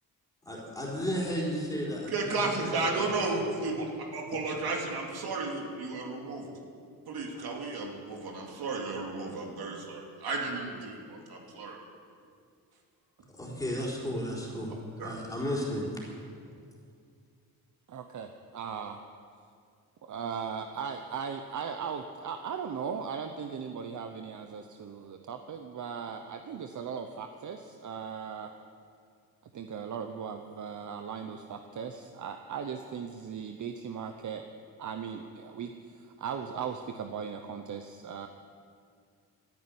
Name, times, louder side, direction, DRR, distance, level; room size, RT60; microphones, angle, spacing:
voice 1, 0.5-3.1 13.3-14.7 15.0-15.8, equal, 10° left, -4 dB, 4.2 m, -33 dB
voice 2, 2.1-6.5 7.0-11.8 15.0-15.1, right 3 dB, 75° right, 0 dB, 2.9 m, -33 dB
voice 3, 17.9-19.0 20.0-28.5 29.5-34.4 34.8-38.3, right 6 dB, 50° right, 6 dB, 0.8 m, -38 dB
14.0 x 9.8 x 9.6 m, 2.2 s
wide cardioid pair, 135°, 38 cm